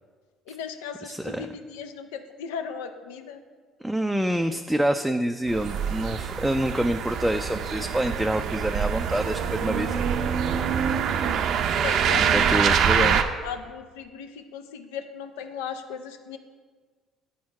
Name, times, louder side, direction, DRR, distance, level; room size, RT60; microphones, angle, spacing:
voice 1, 0.5-3.4 11.8-16.4, left 7 dB, 85° left, 7 dB, 0.6 m, -36 dB
voice 2, 1.0-1.5 3.8-10.0 12.1-13.2, right 1 dB, 5° right, 6 dB, 0.4 m, -27 dB
sound 1, 5.5-13.2, right 7 dB, 65° right, 0.5 m, -25 dB
9.2 x 4.4 x 4.8 m, 1.5 s
hypercardioid pair, 65°, 0 cm